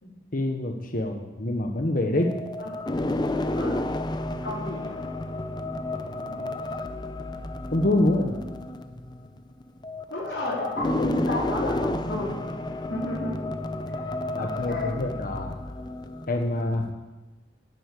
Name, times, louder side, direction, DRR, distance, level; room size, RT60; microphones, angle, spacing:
voice 1, 0.3-2.3 7.7-8.4 14.4-15.6 16.3-16.9, left 1 dB, 50° left, 3 dB, 1.1 m, -25 dB
sound 1, 2.2-16.9, left 1 dB, 25° left, 0.6 m, -31 dB
voice 2, 3.5-3.9 4.4-5.0 10.1-12.3 12.9-13.5 13.9-15.0, left 2 dB, 75° left, -5 dB, 4.2 m, -32 dB
11.5 x 8.1 x 8.4 m, 1.1 s
head